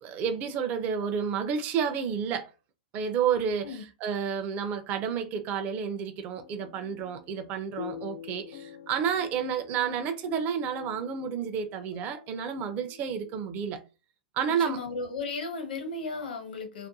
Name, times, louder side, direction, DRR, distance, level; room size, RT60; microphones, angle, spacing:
voice 1, 0.0-2.5 2.9-13.8 14.3-14.8, right 7 dB, 35° right, 0.4 m, -30 dB
sound 1, 6.3-13.4, left 9 dB, 60° left, 0.4 m, -46 dB
voice 2, 14.5-16.9, left 3 dB, 85° left, 0.9 m, -35 dB
2.5 x 2.2 x 2.6 m
hypercardioid pair, 120°, 5 cm